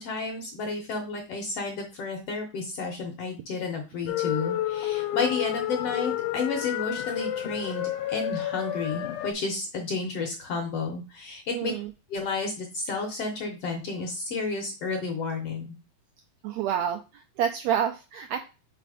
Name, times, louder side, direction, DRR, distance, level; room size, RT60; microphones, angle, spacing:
voice 1, 0.0-11.7 12.1-15.7, left 4 dB, 65° left, 3 dB, 1.6 m, -31 dB
sound 1, 4.1-9.3, left 12 dB, 85° left, 2.1 m, -30 dB
voice 2, 11.5-11.9 16.4-18.4, right 9 dB, 85° right, 6 dB, 1.6 m, -28 dB
5.1 x 4.2 x 4.9 m, 0.30 s
omnidirectional pair, 3.7 m